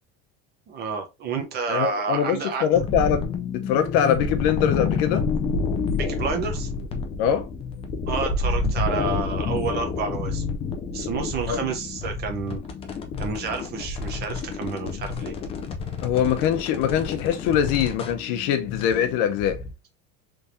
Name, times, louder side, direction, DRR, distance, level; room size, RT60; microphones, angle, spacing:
voice 1, 0.7-2.6 5.9-6.7 8.1-10.4 10.9-12.6 13.2-15.3, right 5 dB, 30° right, 0.8 m, -29 dB
voice 2, 1.7-3.3 3.5-5.3 7.2-7.5 11.5-11.6 16.0-19.6, left 9 dB, 55° left, 0.7 m, -23 dB
sound 1, 2.7-19.7, left 4 dB, 20° left, 0.3 m, -29 dB
3.5 x 3.3 x 2.6 m
cardioid pair, 170°, 35 cm